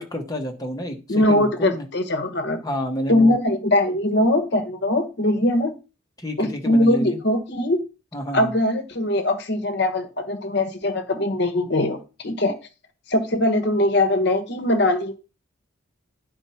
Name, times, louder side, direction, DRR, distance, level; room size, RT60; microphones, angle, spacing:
voice 1, 0.0-1.9 2.6-3.4 6.2-7.2 8.1-8.5, equal, 15° left, 3 dB, 1.3 m, -30 dB
voice 2, 1.1-2.6 3.1-5.8 6.4-7.8 8.3-12.5 13.1-15.1, left 1 dB, 50° left, 8 dB, 1.1 m, -21 dB
10.0 x 4.4 x 5.6 m, 0.31 s
head